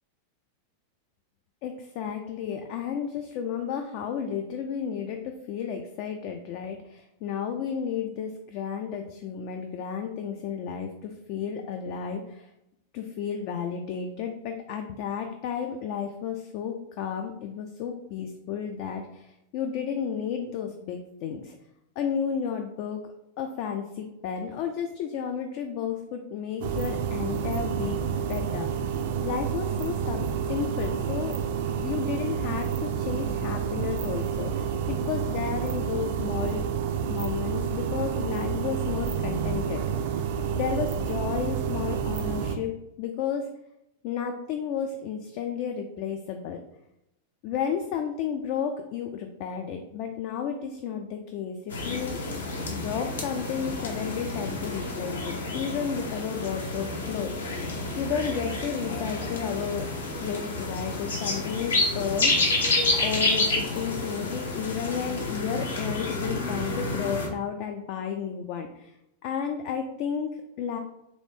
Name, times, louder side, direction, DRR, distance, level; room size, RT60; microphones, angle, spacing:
voice 1, 1.6-12.5 12.9-21.6 22.0-23.0 23.4-31.4 31.8-36.7 37.1-40.2 40.6-42.7 43.0-43.5 44.0-46.6 47.4-52.2 52.8-59.9 60.2-62.6 63.0-68.9 69.2-70.8, left 7 dB, 45° left, 5 dB, 0.3 m, -32 dB
sound 1, 26.6-42.6, right 7 dB, 50° right, 0.3 m, -29 dB
sound 2, 51.7-67.3, left 2 dB, 70° left, 0.7 m, -29 dB
3.1 x 2.6 x 3.3 m, 0.85 s
figure-of-eight pair, 90°, 0 cm